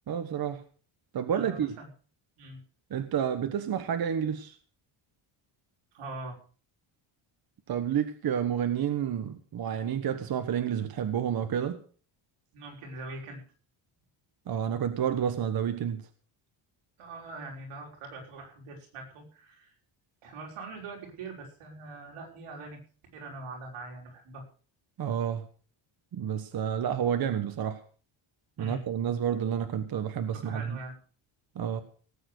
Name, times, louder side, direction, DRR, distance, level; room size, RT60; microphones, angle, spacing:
voice 1, 0.1-0.6 1.1-1.7 2.9-4.5 7.7-11.8 14.5-16.0 25.0-25.4 26.1-27.8 28.6-30.8 31.5-31.8, right 8 dB, 45° right, 1.3 m, -30 dB
voice 2, 1.3-1.9 2.4-2.6 5.9-6.4 12.5-13.4 17.0-19.7 20.2-22.8 23.1-24.4 28.6-28.8 30.4-31.0, right 2 dB, 90° right, 5.9 m, -42 dB
18.0 x 8.7 x 6.6 m
cardioid pair, 155°, 50 cm